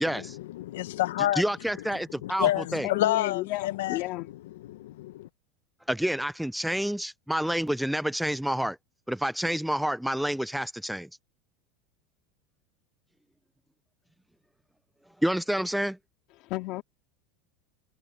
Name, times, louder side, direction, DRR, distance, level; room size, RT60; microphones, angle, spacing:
voice 1, 0.0-0.4 1.3-2.9 5.9-8.8 9.1-11.1 15.2-16.0, equal, ahead, 0.3 m, -28 dB
voice 2, 0.6-1.4 2.2-4.0 4.7-5.3, left 14 dB, 80° left, 0.9 m, -28 dB
voice 3, 2.8-4.3 16.4-16.8, left 19 dB, 55° left, 2.5 m, -33 dB
supercardioid pair, 120°, 0 cm